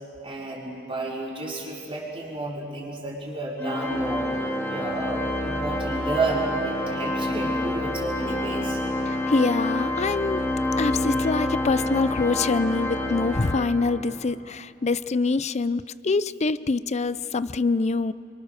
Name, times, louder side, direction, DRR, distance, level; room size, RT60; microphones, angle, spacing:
voice 1, 0.2-4.3 4.7-8.8, right 2 dB, 30° right, -4 dB, 5.1 m, -31 dB
Organ, 3.6-14.2, left 1 dB, 10° left, 2.0 m, -28 dB
voice 2, 9.1-10.4 10.7-18.1, left 3 dB, 35° left, 16 dB, 0.5 m, -25 dB
28.0 x 24.5 x 6.6 m, 3.0 s
head